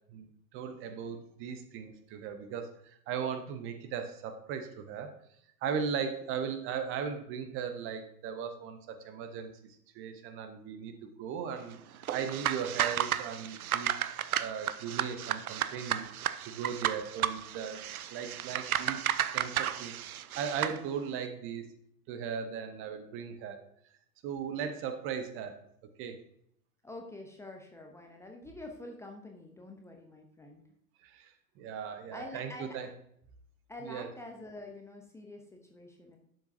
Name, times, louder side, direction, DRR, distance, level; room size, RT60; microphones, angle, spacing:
voice 1, 0.1-5.1 5.6-9.5 9.9-16.1 16.4-19.0 19.3-19.9 20.4-21.7 22.1-23.6 24.2-25.6 26.0-26.2 31.0-31.3 31.6-32.9 33.8-34.1, right 7 dB, 25° right, 8 dB, 0.8 m, -37 dB
sound 1, 12.0-20.8, right 10 dB, 65° right, 0.6 m, -33 dB
voice 2, 26.8-30.6 32.1-32.8 33.7-36.2, left 1 dB, 5° left, 2 dB, 0.7 m, -46 dB
11.5 x 7.0 x 2.7 m, 0.69 s
figure-of-eight pair, 95°, 48 cm